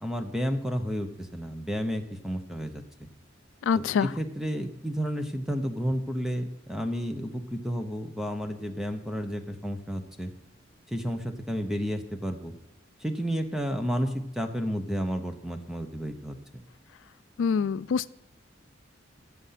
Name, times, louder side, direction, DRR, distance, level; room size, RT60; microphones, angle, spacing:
voice 1, 0.0-3.1 3.7-10.3 10.9-12.5 13.0-16.4, equal, ahead, 6 dB, 0.8 m, -31 dB
voice 2, 3.7-4.1 17.4-18.1, left 6 dB, 75° left, 17 dB, 0.3 m, -25 dB
14.0 x 8.0 x 5.8 m, 0.87 s
head